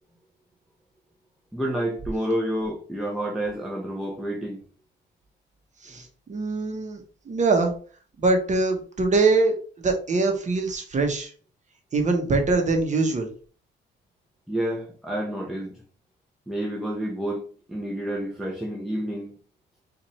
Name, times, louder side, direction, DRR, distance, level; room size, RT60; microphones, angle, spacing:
voice 1, 1.5-4.6 14.5-15.7 16.5-19.3, right 1 dB, ahead, 0.7 m, -29 dB
voice 2, 5.8-7.7 8.2-11.3 11.9-13.3, right 3 dB, 40° right, 1.0 m, -23 dB
4.1 x 2.5 x 3.1 m
cardioid pair, 90°, 20 cm